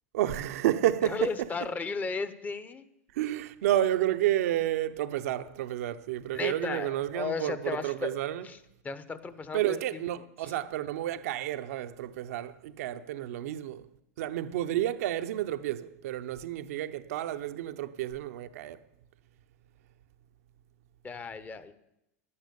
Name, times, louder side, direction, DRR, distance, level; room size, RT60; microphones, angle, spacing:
voice 1, 0.1-1.5 3.1-8.5 9.5-13.9 14.2-18.8, right 13 dB, 70° right, 0.7 m, -30 dB
voice 2, 1.0-2.9 6.3-8.2 8.4-8.6 8.8-9.8 10.4-10.5 21.0-21.7, left 4 dB, 20° left, 0.9 m, -35 dB
11.0 x 9.7 x 6.9 m
hypercardioid pair, 105°, 8 cm